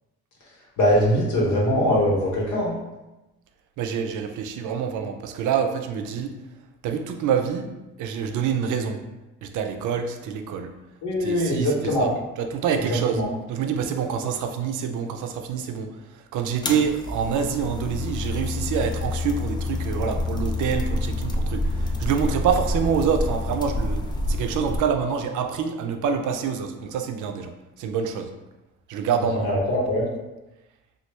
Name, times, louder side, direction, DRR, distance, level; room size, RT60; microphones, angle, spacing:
voice 1, 0.8-2.7 11.0-12.1 13.1-13.3 29.4-30.1, equal, 80° left, -4 dB, 1.2 m, -22 dB
voice 2, 3.8-6.4 6.8-7.7 8.0-9.0 9.4-10.7 11.2-28.3 28.9-29.5, right 7 dB, 80° right, 6 dB, 0.5 m, -26 dB
sound 1, 16.6-24.8, left 2 dB, 15° left, 0.4 m, -28 dB
3.0 x 2.3 x 3.2 m, 1.0 s
cardioid pair, 90°, 30 cm